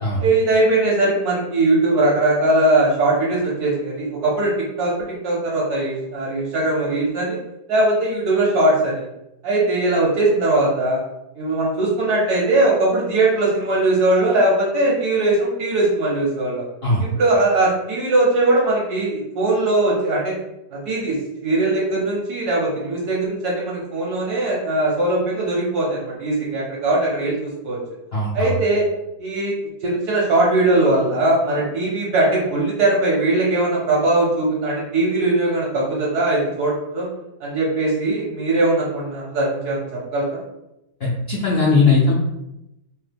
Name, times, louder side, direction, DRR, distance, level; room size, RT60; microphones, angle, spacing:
voice 1, 0.2-7.4 7.7-9.0 9.4-11.0 11.4-16.6 17.0-20.4 20.7-21.2 21.4-27.8 28.3-28.8 29.2-29.5 29.8-37.1 37.4-40.4, right 2 dB, 65° right, -4 dB, 1.2 m, -20 dB
voice 2, 28.1-28.5 41.0-42.1, left 3 dB, 80° left, -7 dB, 0.5 m, -18 dB
3.1 x 2.1 x 3.3 m, 0.88 s
omnidirectional pair, 1.9 m